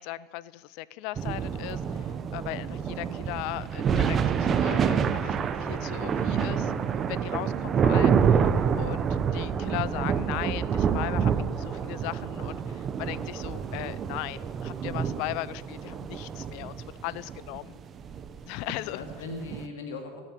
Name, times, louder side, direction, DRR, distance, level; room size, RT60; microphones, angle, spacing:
voice 1, 0.0-8.5 8.8-16.8 17.0-17.7 18.5-19.0, left 18 dB, 60° left, 19 dB, 0.5 m, -38 dB
sound 1, 1.2-19.7, right 7 dB, 30° right, 0.9 m, -28 dB
voice 2, 15.8-16.1 18.7-20.2, left 2 dB, 90° left, 4 dB, 2.4 m, -40 dB
16.0 x 8.9 x 9.0 m, 1.5 s
supercardioid pair, 125°, 0 cm